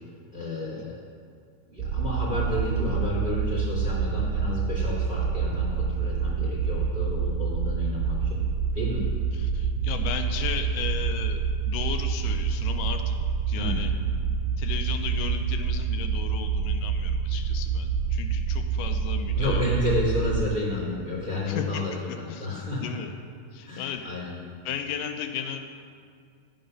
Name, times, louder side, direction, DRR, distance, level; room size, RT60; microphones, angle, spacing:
voice 1, 0.3-1.0 1.7-8.4 8.7-9.0 13.5-13.8 19.4-23.0 23.7-24.3, left 1 dB, 20° right, -6 dB, 2.2 m, -31 dB
sound 1, 1.8-20.5, right 6 dB, 80° right, 2.0 m, -27 dB
voice 2, 9.3-13.2 13.5-13.9 14.6-19.8 21.5-23.1 23.5-24.0 24.7-25.6, left 8 dB, 85° left, 6 dB, 2.2 m, -35 dB
10.5 x 7.7 x 5.4 m, 2.2 s
omnidirectional pair, 3.8 m